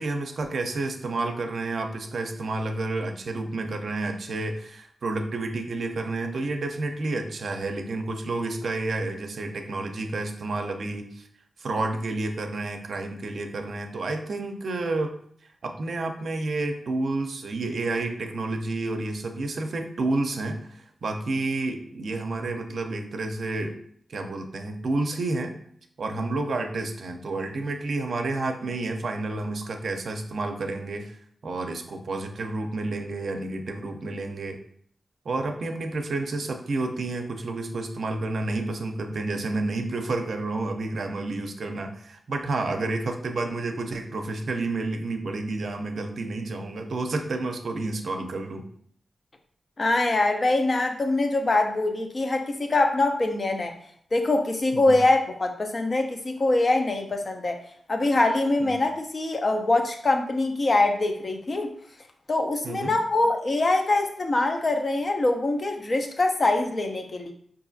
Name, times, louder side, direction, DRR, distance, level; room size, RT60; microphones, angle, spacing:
voice 1, 0.0-11.3 11.6-15.1 15.6-23.7 24.1-25.5 26.0-31.2 31.4-34.6 35.2-48.6 54.7-55.0 58.6-58.8 62.6-63.0, right 2 dB, 70° right, 4 dB, 0.5 m, -30 dB
voice 2, 49.8-53.7 54.1-57.6 57.9-61.7 62.3-67.3, left 2 dB, 50° left, 4 dB, 0.6 m, -23 dB
4.8 x 2.6 x 2.6 m, 0.63 s
cardioid pair, 55°, 0 cm